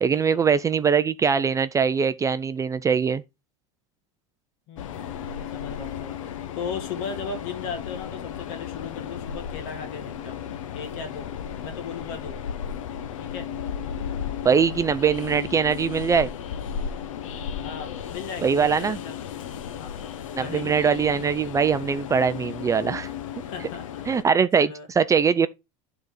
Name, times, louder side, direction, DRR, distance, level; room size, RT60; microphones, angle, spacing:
voice 1, 0.0-3.2 14.4-16.3 18.4-19.0 20.3-23.1 24.1-25.5, right 6 dB, 20° right, 0.4 m, -22 dB
voice 2, 4.7-10.4 10.7-11.3 11.6-12.4 13.2-13.5 17.6-19.2 19.8-19.9 20.4-20.7 23.4-24.0 24.6-24.9, left 5 dB, 60° left, 2.1 m, -37 dB
Train, 4.8-24.2, left 8 dB, 90° left, 0.8 m, -35 dB
9.8 x 4.0 x 4.8 m
supercardioid pair, 115°, 16 cm